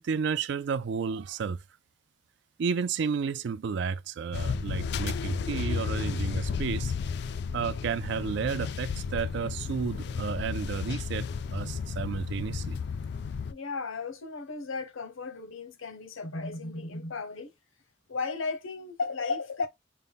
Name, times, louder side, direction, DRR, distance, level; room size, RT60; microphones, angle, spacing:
voice 1, 0.0-1.6 2.6-6.9 7.5-12.8, right 6 dB, 60° right, 0.3 m, -32 dB
sound 1, 4.3-13.5, left 5 dB, 55° left, 0.3 m, -33 dB
voice 2, 13.5-17.5 18.1-19.7, left 4 dB, 80° left, 0.9 m, -35 dB
5.3 x 2.1 x 3.5 m
head